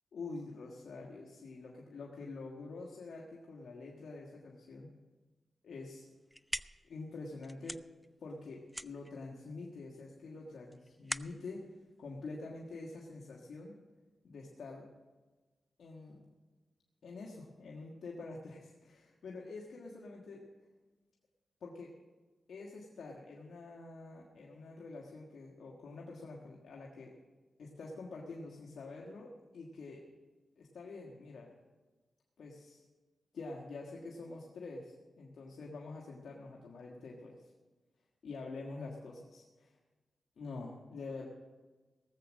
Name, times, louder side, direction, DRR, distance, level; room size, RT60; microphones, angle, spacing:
voice 1, 0.1-4.9 5.6-6.1 6.9-7.8 8.2-11.7 12.0-13.8 14.2-14.8 15.8-16.2 17.0-20.4 21.6-21.9 22.5-27.1 27.6-30.0 30.6-31.5 32.4-32.8 33.3-37.4 38.2-39.8 40.4-41.3, left 3 dB, 85° left, -2 dB, 1.5 m, -46 dB
sound 1, 6.0-12.9, equal, ahead, 0.4 m, -45 dB
18.5 x 7.5 x 6.2 m, 1.3 s
cardioid pair, 65°, 0 cm